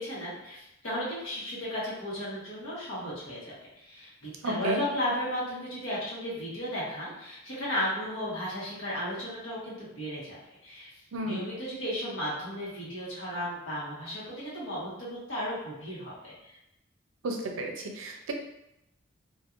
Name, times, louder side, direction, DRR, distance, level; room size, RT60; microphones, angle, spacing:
voice 1, 0.0-10.4 10.6-10.9 11.2-16.6, equal, 80° left, -7 dB, 1.2 m, -35 dB
voice 2, 4.4-4.8 11.1-11.4 17.2-18.3, right 2 dB, 80° right, 2 dB, 0.5 m, -32 dB
2.9 x 2.5 x 2.5 m, 0.85 s
head